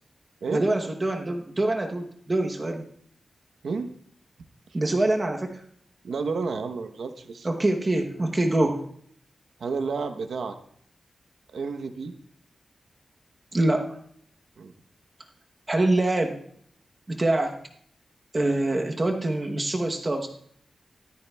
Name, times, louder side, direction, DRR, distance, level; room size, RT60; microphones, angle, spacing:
voice 1, 0.5-2.8 4.7-5.6 7.4-8.8 13.5-14.0 15.7-16.4 17.1-17.6 18.3-20.3, right 2 dB, 25° right, 2 dB, 0.9 m, -25 dB
voice 2, 6.0-7.5 9.6-10.6 11.5-12.1 14.6-14.7, right 4 dB, 80° right, 7 dB, 0.9 m, -31 dB
14.5 x 13.0 x 2.3 m, 0.64 s
wide cardioid pair, 160°, 0 cm